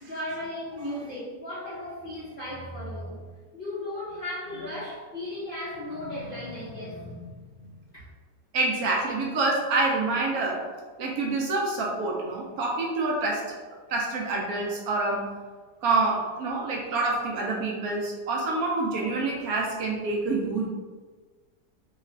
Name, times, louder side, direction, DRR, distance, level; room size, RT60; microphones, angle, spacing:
voice 1, 0.0-8.0, left 1 dB, 55° left, -10 dB, 0.6 m, -36 dB
voice 2, 8.5-10.7 11.0-13.4 13.9-15.2 15.8-20.7, right 3 dB, 70° right, -2 dB, 0.9 m, -27 dB
3.1 x 2.2 x 3.7 m, 1.4 s
omnidirectional pair, 1.8 m